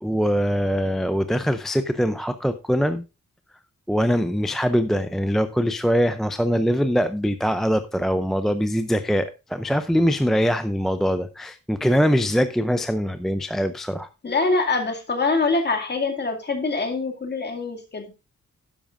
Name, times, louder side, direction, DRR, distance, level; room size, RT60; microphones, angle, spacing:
voice 1, 0.0-3.0 3.9-14.1, equal, ahead, 10 dB, 0.5 m, -22 dB
voice 2, 14.2-18.1, left 3 dB, 35° left, 5 dB, 2.2 m, -24 dB
12.0 x 10.0 x 2.5 m, 0.28 s
wide cardioid pair, 170°, 29 cm